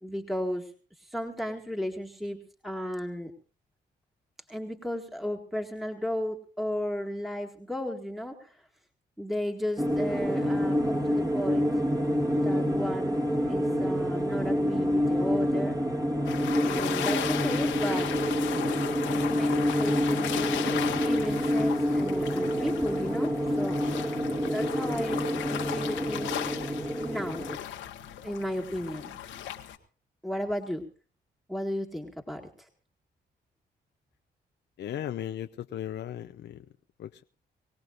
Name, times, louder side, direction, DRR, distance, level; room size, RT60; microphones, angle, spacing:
voice 1, 0.0-3.3 4.5-8.6 9.2-11.7 12.4-13.2 13.5-15.8 16.6-18.2 19.1-23.8 24.5-26.4 27.0-27.5 28.2-29.4 30.2-30.8 31.5-32.7, equal, ahead, 2 dB, 1.9 m, -35 dB
sound 1, 9.8-27.6, equal, 20° right, 2.1 m, -27 dB
sound 2, 16.2-29.8, left 11 dB, 85° left, 1.3 m, -36 dB
voice 2, 34.8-36.6 37.0-37.2, left 11 dB, 65° left, 8 dB, 0.6 m, -36 dB
24.0 x 17.0 x 2.5 m, 0.38 s
supercardioid pair, 60°, 19 cm